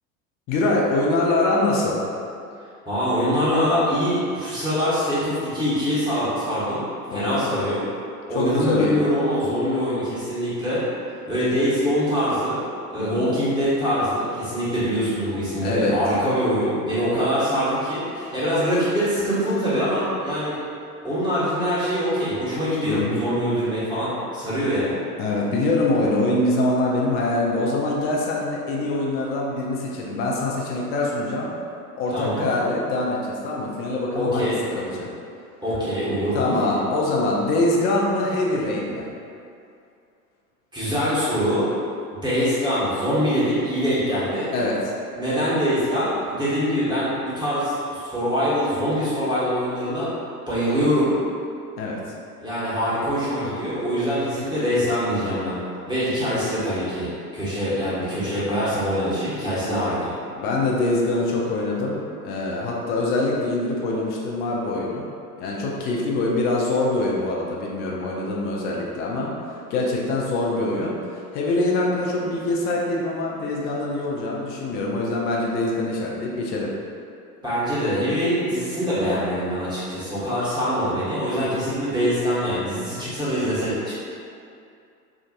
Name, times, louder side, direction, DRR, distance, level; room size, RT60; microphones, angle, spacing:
voice 1, 0.5-2.0 7.1-7.6 8.3-9.0 13.0-13.3 15.6-16.0 22.8-23.2 25.2-31.5 32.0-35.1 36.3-39.1 44.5-44.8 51.8-52.0 60.4-65.1 65.4-76.7 81.4-81.5, left 2 dB, 25° left, -3 dB, 0.3 m, -24 dB
voice 2, 2.8-7.8 8.3-10.8 11.3-12.6 12.9-20.6 21.0-24.9 32.1-32.4 34.1-34.6 35.6-36.6 40.7-41.6 42.1-44.5 45.1-50.1 50.5-51.1 52.4-55.6 55.9-60.1 77.4-83.9, equal, 10° right, -10 dB, 1.5 m, -24 dB
4.7 x 2.5 x 2.5 m, 2.5 s
hypercardioid pair, 85°, 48 cm